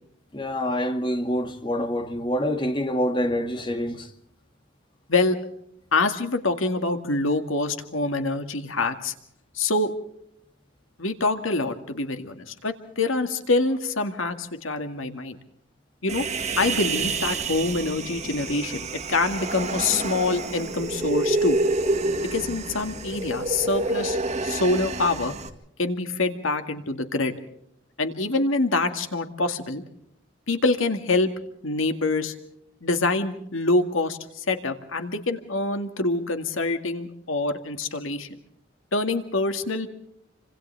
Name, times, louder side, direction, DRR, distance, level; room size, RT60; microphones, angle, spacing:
voice 1, 0.3-4.1, equal, 25° left, 2.1 m, -26 dB
voice 2, 5.9-9.1 9.5-9.9 11.0-15.4 16.0-16.3 16.6-21.6 22.3-25.3 25.8-27.3 28.0-29.8 30.5-31.3 31.6-32.3 32.8-38.3 38.9-39.9, left 3 dB, 85° left, 2.1 m, -25 dB
Human voice, 16.1-25.5, right 2 dB, 35° right, 1.9 m, -28 dB
29.0 x 26.0 x 3.5 m
head